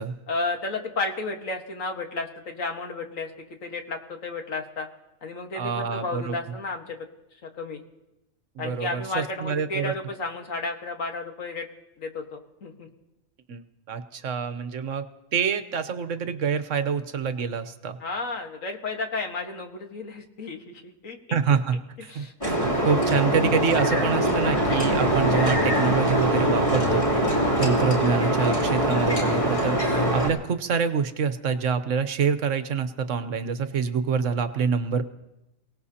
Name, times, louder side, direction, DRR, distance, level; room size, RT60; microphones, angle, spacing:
voice 1, 0.3-3.3 3.6-4.9 5.2-7.0 7.6-7.8 8.6-11.7 12.0-12.9 18.0-21.4 22.1-22.3, left 3 dB, 80° left, 3 dB, 1.9 m, -32 dB
voice 2, 5.5-6.4 8.6-9.9 13.5-15.0 15.3-18.0 21.3-27.1 27.6-35.0, right 6 dB, 70° right, 11 dB, 1.2 m, -26 dB
sound 1, 22.4-30.3, equal, 25° left, 3.0 m, -23 dB
28.5 x 17.5 x 2.8 m, 0.94 s
omnidirectional pair, 1.4 m